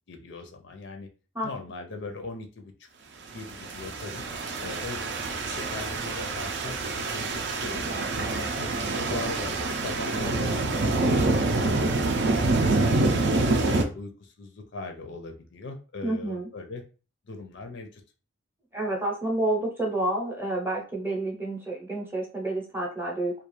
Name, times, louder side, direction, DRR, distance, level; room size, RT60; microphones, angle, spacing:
voice 1, 0.1-1.1 1.4-2.7 3.3-4.2 4.6-5.0 5.4-8.7 8.9-10.5 10.8-13.3 13.6-16.8 17.3-18.0, left 3 dB, 60° left, 5 dB, 0.5 m, -39 dB
sound 1, 3.5-13.8, right 2 dB, 55° right, 0.4 m, -26 dB
voice 2, 16.0-16.5 18.7-23.4, right 1 dB, 10° right, -1 dB, 0.6 m, -29 dB
2.4 x 2.3 x 3.0 m, 0.34 s
head